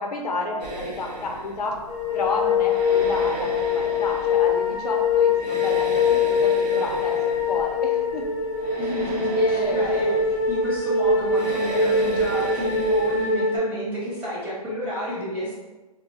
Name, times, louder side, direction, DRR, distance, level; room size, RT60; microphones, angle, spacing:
voice 1, 0.0-1.7 2.1-8.2 9.3-10.0, left 2 dB, 80° left, 2 dB, 0.5 m, -31 dB
sound 1, 0.6-13.3, right 2 dB, 80° right, 0.7 m, -37 dB
sound 2, 1.9-13.6, left 4 dB, 25° left, 0.4 m, -23 dB
voice 2, 8.8-10.2 10.5-15.5, equal, 10° right, -10 dB, 0.7 m, -30 dB
2.3 x 2.0 x 2.8 m, 1.2 s
hypercardioid pair, 140°, 20 cm